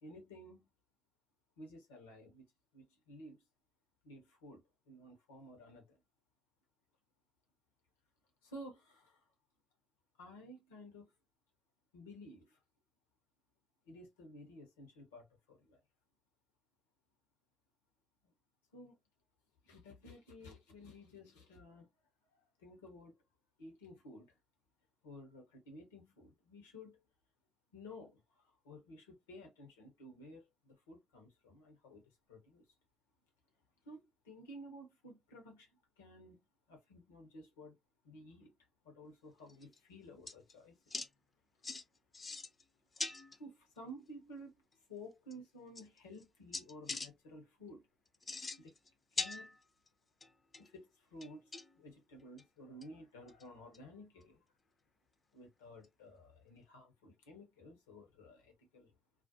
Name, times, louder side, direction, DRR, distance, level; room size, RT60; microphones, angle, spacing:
voice 1, 0.0-0.7 1.6-2.4 2.7-3.4 4.0-6.0 8.4-9.2 10.2-11.1 11.9-12.6 13.8-15.8 18.2-18.3 18.7-19.0 19.6-21.9 22.3-23.2 23.6-24.4 25.0-27.0 27.7-32.6 33.8-36.4 36.7-37.8 38.0-38.5 38.8-40.8 42.9-43.0 43.3-44.5 44.9-47.9 48.6-48.7 49.1-49.5 50.6-54.4 55.3-58.9, equal, 85° left, 0.8 m, -54 dB
sound 1, 39.5-39.8 40.3-40.5 40.9-41.1 41.6-41.8 42.1-42.6 42.9-43.4 44.7-44.8 45.3-45.4 45.7-46.2 46.5-47.1 48.1-48.9 49.1-49.9 50.2-50.7 51.2-51.8 52.4-52.5 52.8-52.9 53.3-53.4 53.7-53.8 55.8-55.9, left 3 dB, 35° left, 0.6 m, -42 dB
2.4 x 2.1 x 2.6 m
hypercardioid pair, 45°, 0 cm